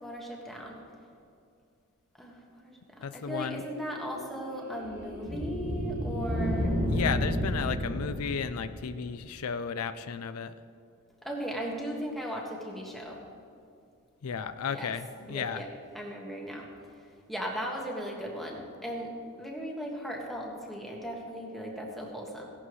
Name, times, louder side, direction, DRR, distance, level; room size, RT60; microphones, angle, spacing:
voice 1, 0.0-0.7 2.2-6.7 11.2-13.2 14.7-14.9 15.3-15.7 15.9-16.7 17.3-19.1 19.4-22.4, equal, ahead, -2 dB, 1.6 m, -37 dB
voice 2, 3.0-3.6 6.9-10.5 14.2-15.6, left 6 dB, 80° left, 11 dB, 0.4 m, -34 dB
sound 1, 3.6-9.0, equal, 25° right, 3.1 m, -32 dB
16.5 x 11.0 x 3.2 m, 2.4 s
head